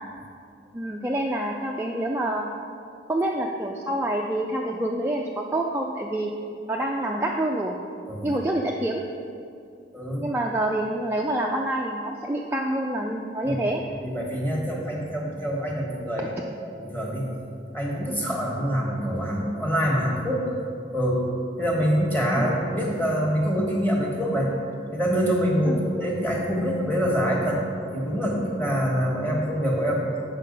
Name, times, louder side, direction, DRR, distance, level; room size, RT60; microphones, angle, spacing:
voice 1, 0.7-2.5 3.1-6.3 6.7-7.8 8.2-9.1 10.2-13.8 22.4-22.5 25.7-25.8, right 1 dB, 10° right, -1 dB, 0.3 m, -27 dB
voice 2, 9.9-10.2 13.4-16.3 16.6-17.3 17.7-20.5 20.9-21.2 21.6-24.5 24.9-27.6 27.9-30.1, equal, 10° left, -2 dB, 1.3 m, -25 dB
8.3 x 5.7 x 5.3 m, 2.5 s
head